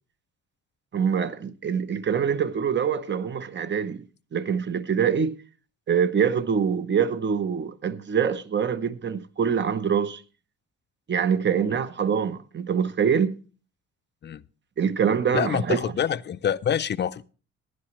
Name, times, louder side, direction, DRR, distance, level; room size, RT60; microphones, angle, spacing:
voice 1, 0.9-4.0 4.3-5.4 5.9-10.2 11.1-13.4 14.8-15.9, right 7 dB, 35° right, 0.9 m, -24 dB
voice 2, 15.3-17.2, left 8 dB, 35° left, 0.5 m, -26 dB
15.5 x 11.0 x 3.1 m
cardioid pair, 90°, 30 cm